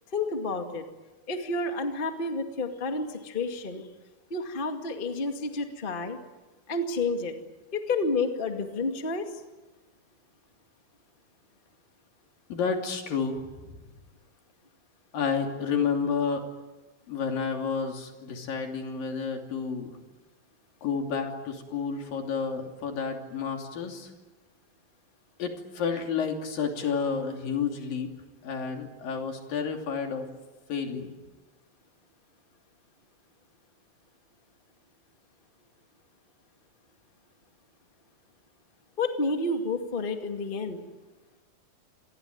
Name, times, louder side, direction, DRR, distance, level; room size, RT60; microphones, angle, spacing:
voice 1, 0.1-0.8 1.3-3.9 4.3-6.2 6.7-7.3 7.7-9.4 39.0-40.8, left 3 dB, 20° left, 5 dB, 1.6 m, -30 dB
voice 2, 12.5-13.4 15.1-16.4 17.1-19.9 20.8-24.1 25.4-28.1 28.4-30.3 30.7-31.2, left 6 dB, 70° left, 4 dB, 4.6 m, -30 dB
27.0 x 20.5 x 9.4 m, 1.2 s
omnidirectional pair, 4.1 m